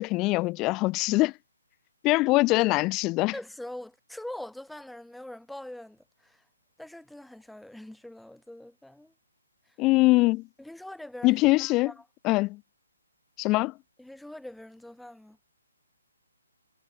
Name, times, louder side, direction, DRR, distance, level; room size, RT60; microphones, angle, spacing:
voice 1, 0.0-1.3 2.0-3.3 9.8-10.4 11.2-11.9 12.2-12.6 13.4-13.7, left 21 dB, 20° left, 0.6 m, -23 dB
voice 2, 3.3-6.4 6.8-9.1 9.7-9.8 10.6-12.0 14.0-15.4, left 1 dB, ahead, 1.5 m, -43 dB
figure-of-eight pair, 135°, 0 cm